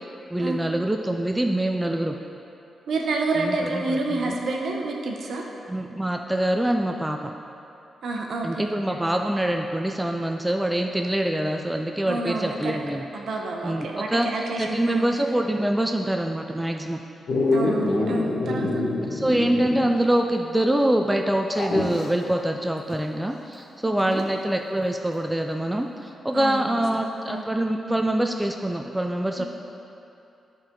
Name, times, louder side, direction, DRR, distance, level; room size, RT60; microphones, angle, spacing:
voice 1, 0.3-2.2 3.4-4.4 5.7-7.3 8.4-13.0 13.6-17.0 19.0-29.4, right 1 dB, 5° right, 3 dB, 0.3 m, -25 dB
voice 2, 2.9-5.4 8.0-8.9 12.1-12.8 13.1-15.1 17.5-18.7 23.8-24.3 26.3-26.8 27.3-27.4 29.4-29.5, right 3 dB, 60° right, 0 dB, 0.9 m, -29 dB
Dog, 17.3-20.0 20.3-20.4 21.5-22.1 24.2-24.3, left 2 dB, 65° left, 1.0 m, -25 dB
13.0 x 4.4 x 3.7 m, 2.8 s
wide cardioid pair, 140°, 0 cm